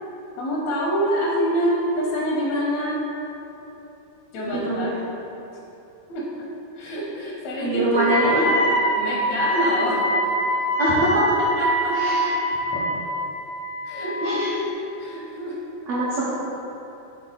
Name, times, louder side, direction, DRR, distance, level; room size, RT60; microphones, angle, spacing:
voice 1, 0.4-3.0 4.3-5.0 6.1-6.5 6.7-8.6 9.0-10.1 11.4-12.2 13.8-14.4 15.0-15.6, equal, 75° left, -5 dB, 1.5 m, -26 dB
voice 2, 4.5-4.9 7.6-8.5 10.8-11.2 11.9-12.3 12.7-12.8 14.2-14.6 15.9-16.3, right 1 dB, 80° right, -8 dB, 1.4 m, -24 dB
Wind instrument woodwind instrument, 7.9-14.4, equal, 60° left, 0.8 m, -24 dB
8.8 x 3.3 x 4.0 m, 3.0 s
omnidirectional pair, 4.2 m